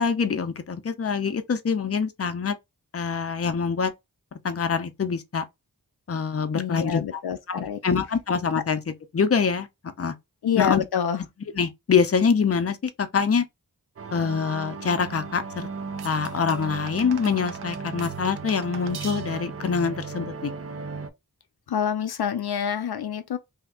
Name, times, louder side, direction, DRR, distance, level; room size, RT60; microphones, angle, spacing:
voice 1, 0.0-2.6 2.9-3.9 4.4-5.4 6.1-7.0 7.5-8.8 9.1-10.1 10.6-10.8 11.6-13.4 14.1-15.7 16.0-20.5, left 5 dB, 40° left, 0.5 m, -25 dB
voice 2, 6.5-7.8 10.4-11.2 21.7-23.4, left 8 dB, 85° left, 0.5 m, -27 dB
sound 1, 14.0-21.1, right 5 dB, 40° right, 0.6 m, -36 dB
sound 2, 16.0-19.6, right 7 dB, 90° right, 0.5 m, -42 dB
2.8 x 2.5 x 3.5 m
wide cardioid pair, 50°, 37 cm